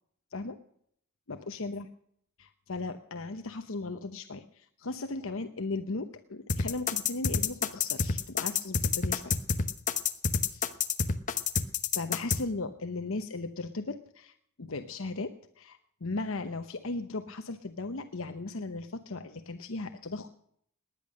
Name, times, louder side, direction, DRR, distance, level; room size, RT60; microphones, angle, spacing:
voice 1, 1.3-1.9 2.4-9.4 10.5-10.7 11.5-11.7 11.9-20.3, left 3 dB, 65° left, 7 dB, 0.9 m, -37 dB
sound 1, 6.5-12.4, left 6 dB, 35° left, 1.0 m, -28 dB
19.5 x 10.5 x 6.5 m, 0.68 s
head